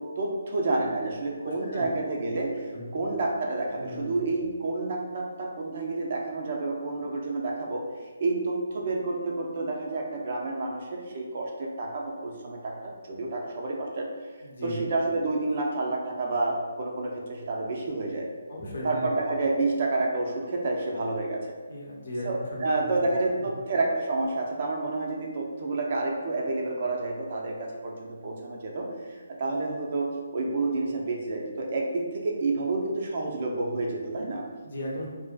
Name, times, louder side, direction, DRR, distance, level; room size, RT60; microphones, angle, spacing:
voice 1, 0.0-7.8 8.2-14.1 14.6-18.3 18.8-21.5 22.2-30.1 30.3-34.4, right 2 dB, 45° right, 0 dB, 0.4 m, -29 dB
voice 2, 1.4-1.9 2.7-3.0 3.8-4.2 14.4-14.8 18.5-19.1 21.7-22.3 22.6-22.9 34.6-35.1, left 1 dB, 60° left, -3 dB, 0.7 m, -36 dB
2.5 x 2.3 x 2.3 m, 1.4 s
hypercardioid pair, 160°, 0 cm